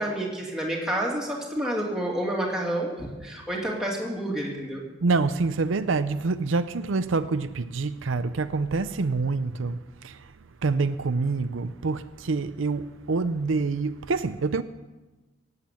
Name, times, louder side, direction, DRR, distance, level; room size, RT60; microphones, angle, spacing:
voice 1, 0.0-4.8, right 1 dB, 5° right, 2.7 m, -29 dB
voice 2, 5.0-9.8 10.0-10.3 10.6-14.6, right 3 dB, 80° right, 0.6 m, -26 dB
17.5 x 8.3 x 8.4 m
head